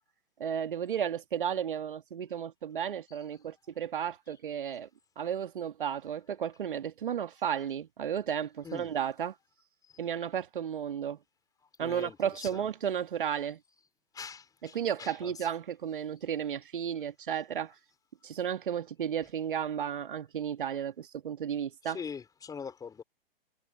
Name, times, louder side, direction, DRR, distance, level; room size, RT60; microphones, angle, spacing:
voice 1, 0.4-4.9 5.2-9.4 10.0-11.2 11.8-13.6 14.6-17.7 18.2-22.0, right 8 dB, 60° right, 2.3 m, -33 dB
voice 2, 11.8-12.7 14.1-15.3 21.9-23.0, left 6 dB, 10° left, 4.7 m, -42 dB
figure-of-eight pair, 115°, 29 cm